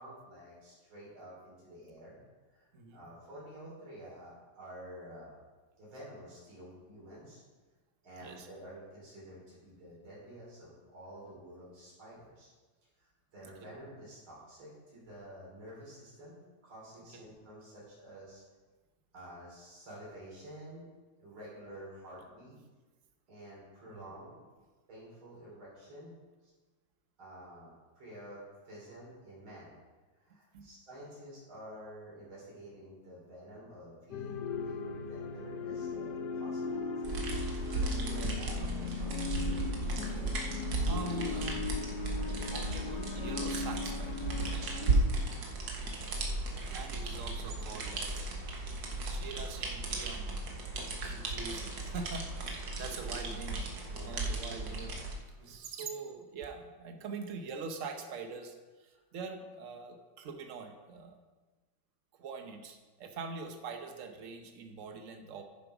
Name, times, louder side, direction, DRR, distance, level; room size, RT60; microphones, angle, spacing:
voice 1, 0.0-2.2 2.5-5.4 5.8-7.4 8.0-12.5 13.0-18.4 19.1-20.9 21.2-22.6 23.3-24.4 24.9-26.1 27.2-29.7 30.2-39.2 52.5-52.6 53.9-54.3 55.4-55.5 58.9-59.0, right 1 dB, 85° right, -6 dB, 4.2 m, -50 dB
sound 1, 34.1-45.0, left 5 dB, 65° left, 1.3 m, -38 dB
sound 2, 37.0-55.1, right 2 dB, 65° right, 1.9 m, -35 dB
voice 2, 39.9-42.1 42.4-44.4 46.7-48.2 49.0-50.4 51.0-53.7 54.0-61.2 62.1-65.4, right 4 dB, 50° right, 5 dB, 1.1 m, -44 dB
10.0 x 7.3 x 4.9 m, 1.3 s
omnidirectional pair, 2.2 m